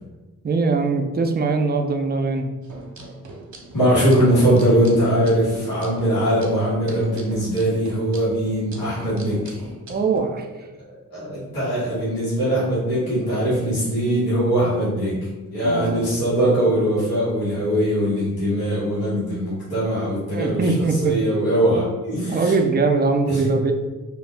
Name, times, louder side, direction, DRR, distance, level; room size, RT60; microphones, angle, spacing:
voice 1, 0.4-2.5 9.9-10.5 15.6-16.0 20.3-21.1 22.3-23.7, right 4 dB, 30° right, 4 dB, 0.4 m, -21 dB
sound 1, 2.6-10.2, right 2 dB, 55° right, 0.8 m, -41 dB
voice 2, 3.7-9.7 11.1-22.5 23.3-23.5, right 1 dB, 90° left, -10 dB, 1.4 m, -21 dB
2.6 x 2.3 x 3.3 m, 1.2 s
cardioid pair, 40°, 35 cm